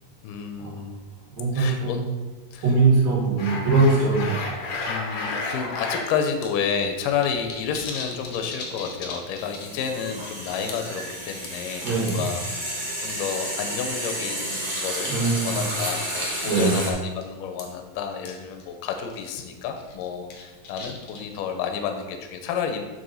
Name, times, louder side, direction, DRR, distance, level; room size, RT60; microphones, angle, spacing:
voice 1, 0.2-1.0 1.5-2.0 2.5-2.6 4.9-15.2 15.4-22.8, left 7 dB, 80° left, 5 dB, 2.3 m, -30 dB
voice 2, 1.3-2.0 2.6-4.7 11.8-12.2 15.1-15.6 16.4-16.8, right 3 dB, 80° right, -5 dB, 4.1 m, -21 dB
sound 1, 3.4-6.1 6.4-6.5 6.8-9.8 10.1-10.3 10.7-11.0 11.4-12.3 13.1-13.8 14.1-14.3 14.9-15.1 15.8-16.0 16.3-16.5 16.8-17.0 17.2-17.3 17.6-17.7 18.2-18.3 18.6-18.7 19.0-19.3 19.8-21.4, left 3 dB, 60° left, 1.6 m, -34 dB
sound 2, 8.3-8.4 8.6-16.9, right 1 dB, 50° right, 0.5 m, -31 dB
7.9 x 6.1 x 4.1 m, 1.2 s
omnidirectional pair, 4.0 m